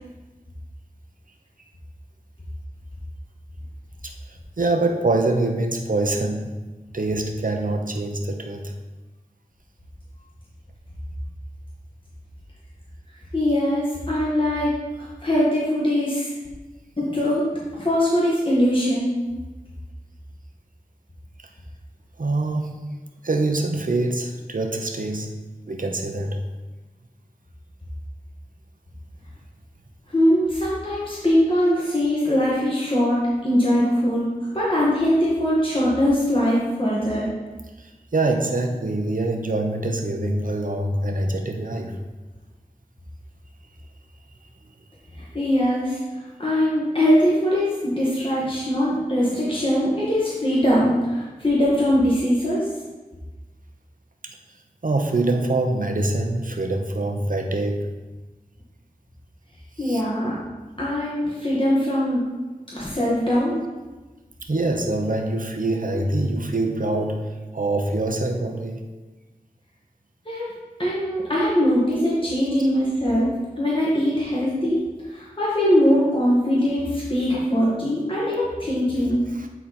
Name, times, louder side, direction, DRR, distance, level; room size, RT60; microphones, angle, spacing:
voice 1, 4.6-6.6 6.9-8.7 22.2-22.7 23.2-25.3 25.7-26.4 37.8-42.0 54.2-54.4 54.8-57.9 59.8-60.0 64.5-68.8 79.3-79.5, right 2 dB, 70° right, 3 dB, 0.8 m, -24 dB
voice 2, 13.3-16.3 17.0-19.2 30.1-37.3 45.2-52.7 59.8-60.3 60.8-62.2 62.7-63.6 70.2-70.5 70.8-73.3 73.6-74.8 75.1-79.2, equal, 35° left, -7 dB, 1.7 m, -21 dB
9.1 x 4.1 x 4.3 m, 1.2 s
wide cardioid pair, 40°, 15 cm